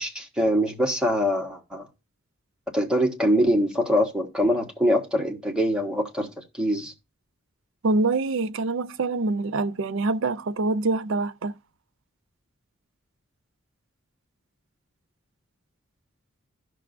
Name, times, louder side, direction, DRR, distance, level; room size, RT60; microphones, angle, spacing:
voice 1, 0.0-1.9 2.7-6.3 6.5-6.9, equal, 5° right, 1.2 m, -23 dB
voice 2, 7.8-11.5, right 3 dB, 65° right, 0.5 m, -25 dB
16.0 x 6.0 x 2.5 m
head